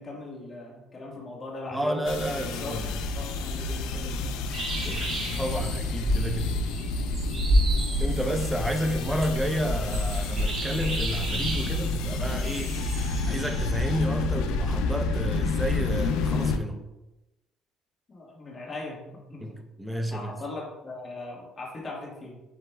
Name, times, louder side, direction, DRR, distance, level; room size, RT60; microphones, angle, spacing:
voice 1, 0.0-2.0 2.5-4.3 18.1-19.5 20.1-22.4, left 2 dB, 30° left, -2 dB, 1.4 m, -39 dB
voice 2, 1.7-3.0 4.8-6.6 8.0-12.8 13.3-16.9 19.4-20.4, equal, 5° right, 4 dB, 0.6 m, -31 dB
sound 1, 2.0-16.6, left 3 dB, 90° left, 0.4 m, -29 dB
sound 2, 4.5-14.0, equal, 40° right, 1.2 m, -30 dB
7.6 x 3.0 x 2.2 m, 1.0 s
cardioid pair, 110°, 0 cm